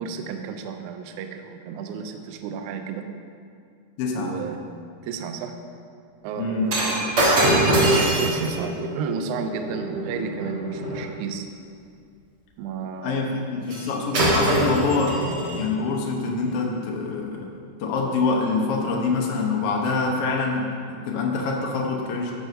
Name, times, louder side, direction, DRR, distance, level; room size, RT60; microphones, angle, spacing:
voice 1, 0.0-3.0 4.2-4.6 5.0-5.6 6.2-11.5 12.6-13.4, right 6 dB, 85° right, 6 dB, 1.7 m, -32 dB
voice 2, 4.0-4.4 6.3-6.8 13.0-17.5 17.8-22.3, left 4 dB, 80° left, -1 dB, 1.3 m, -25 dB
Shatter, 6.7-11.1 13.7-13.9 14.1-15.7 16.4-16.5, right 1 dB, 50° right, 1.8 m, -23 dB
13.5 x 5.9 x 2.7 m, 2.3 s
omnidirectional pair, 4.1 m